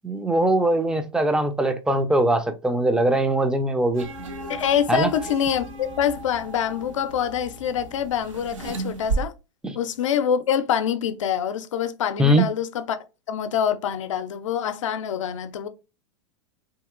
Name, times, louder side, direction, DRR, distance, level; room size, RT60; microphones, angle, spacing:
voice 1, 0.0-4.1 4.9-5.1 9.6-9.8 12.2-12.4, right 1 dB, 5° right, 0.4 m, -21 dB
sound 1, 3.9-9.2, right 3 dB, 85° right, 0.7 m, -34 dB
voice 2, 4.5-9.3 9.7-13.0 13.3-15.7, left 8 dB, 80° left, 0.5 m, -25 dB
2.8 x 2.8 x 2.4 m
hypercardioid pair, 110°, 16 cm